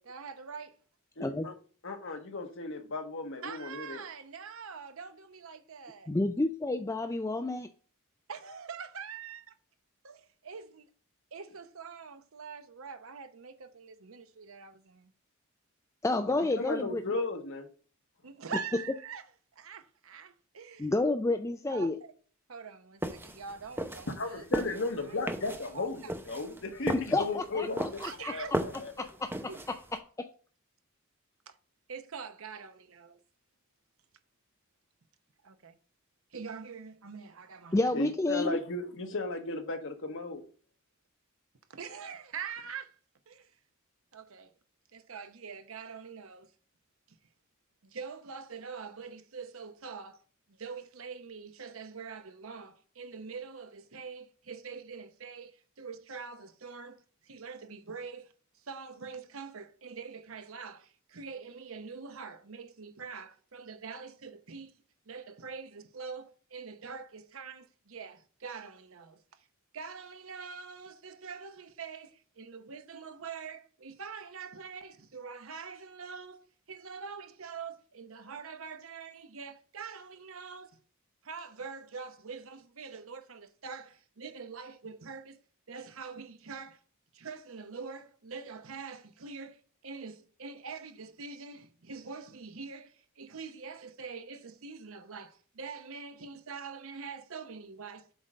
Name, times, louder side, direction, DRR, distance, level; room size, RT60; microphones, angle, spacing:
voice 1, 0.0-0.8 3.4-6.1 8.3-9.5 10.0-10.9 11.3-15.1 18.2-19.2 19.6-20.9 21.7-21.9 22.5-25.4 25.7-26.1 28.0-28.6 29.5-29.6 31.5-31.6 31.9-33.2 35.4-35.8 36.3-37.9 41.7-43.0 43.3-43.5 44.1-44.5 44.9-46.5 47.8-50.2 50.5-58.3 58.6-64.7 65.1-69.2 69.7-80.8 81.2-85.4 85.7-86.8 87.1-98.1, right 5 dB, 70° right, 0.8 m, -44 dB
voice 2, 1.2-1.5 1.8-4.0 16.3-17.7 24.2-27.8 28.3-29.1 37.9-40.4, left 3 dB, 60° left, 1.4 m, -35 dB
voice 3, 6.1-7.7 16.0-17.0 20.8-22.0 27.1-28.3 29.2-29.3 30.2-30.3 37.7-38.6, left 2 dB, 15° left, 0.4 m, -30 dB
sound 1, 23.0-30.0, right 1 dB, 10° right, 0.8 m, -36 dB
8.1 x 3.8 x 5.3 m
head